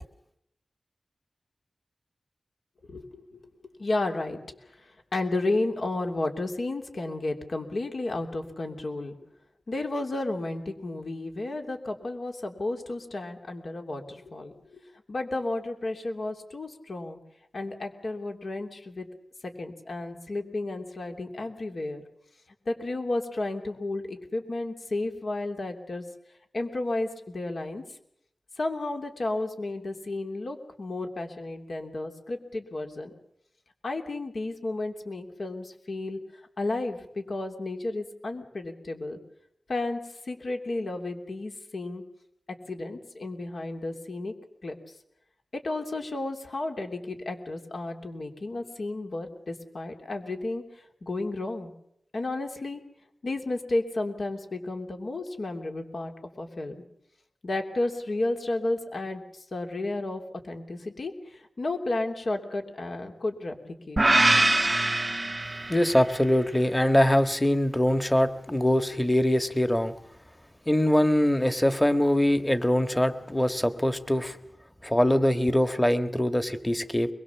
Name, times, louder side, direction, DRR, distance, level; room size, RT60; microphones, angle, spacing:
voice 1, 2.9-3.4 3.8-9.1 9.7-14.8 15.1-17.2 17.5-19.1 19.4-22.0 22.7-26.0 26.5-27.8 28.6-33.1 33.8-36.2 36.6-39.2 39.7-40.0 40.2-42.0 42.7-44.3 44.6-44.8 45.5-51.7 52.1-52.8 53.2-56.1 56.4-56.8 57.4-64.0, left 2 dB, 70° left, 4 dB, 3.1 m, -32 dB
sound 1, 64.0-66.2, right 2 dB, 30° right, 0.8 m, -23 dB
voice 2, 65.7-69.9 70.7-74.4 74.8-77.1, left 1 dB, 15° left, 10 dB, 1.6 m, -23 dB
23.0 x 22.0 x 7.2 m, 0.74 s
wide cardioid pair, 75°, 0 cm